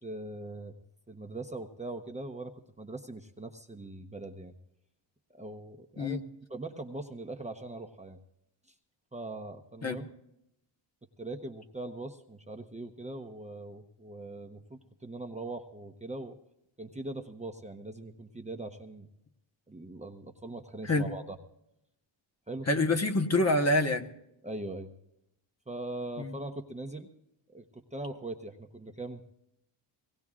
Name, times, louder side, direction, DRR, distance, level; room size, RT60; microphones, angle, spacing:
voice 1, 0.0-0.7 1.1-4.5 5.3-6.2 6.5-8.2 9.1-10.1 11.2-16.4 16.8-19.1 19.7-21.4 22.5-22.7 24.4-24.9 25.7-27.1 27.5-27.6 27.9-29.3, right 2 dB, 15° right, 3 dB, 1.0 m, -41 dB
voice 2, 22.7-24.1 26.2-26.4, left 2 dB, 30° left, 5 dB, 1.2 m, -26 dB
23.0 x 18.0 x 2.5 m, 0.83 s
cardioid pair, 90°, 50 cm